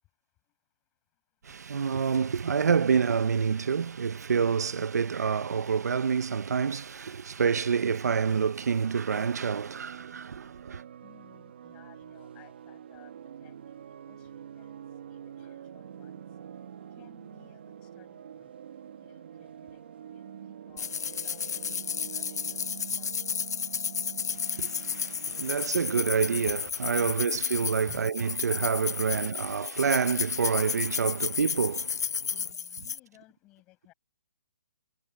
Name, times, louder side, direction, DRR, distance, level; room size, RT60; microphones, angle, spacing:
voice 1, 1.4-10.8 24.5-32.3, right 6 dB, 80° right, 0.6 m, -28 dB
sound 1, 7.8-27.1, right 9 dB, 40° right, 1.6 m, -46 dB
voice 2, 11.0-13.1 13.4-14.8 15.1-16.3 17.0-18.5 18.9-21.8 22.1-22.7 22.9-23.7 27.9-28.2 32.3-33.9, left 18 dB, 15° left, 5.5 m, -59 dB
sound 2, 20.8-33.0, left 6 dB, 75° left, 0.5 m, -32 dB
hypercardioid pair, 180°, 9 cm